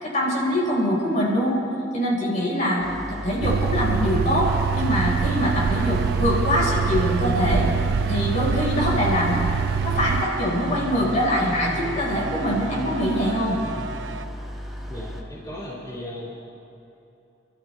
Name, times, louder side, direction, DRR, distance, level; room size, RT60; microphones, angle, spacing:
voice 1, 0.0-1.6 1.9-7.7 8.1-9.4 9.8-13.6, equal, 45° left, -4 dB, 4.1 m, -23 dB
sound 1, 2.8-15.2, equal, ahead, 1.7 m, -35 dB
sound 2, 3.4-10.3, right 6 dB, 55° right, 0.3 m, -24 dB
sound 3, 4.4-14.3, right 5 dB, 90° right, 0.7 m, -36 dB
voice 2, 14.9-16.4, left 1 dB, 20° left, -9 dB, 3.5 m, -36 dB
29.5 x 13.5 x 3.2 m, 2.9 s
head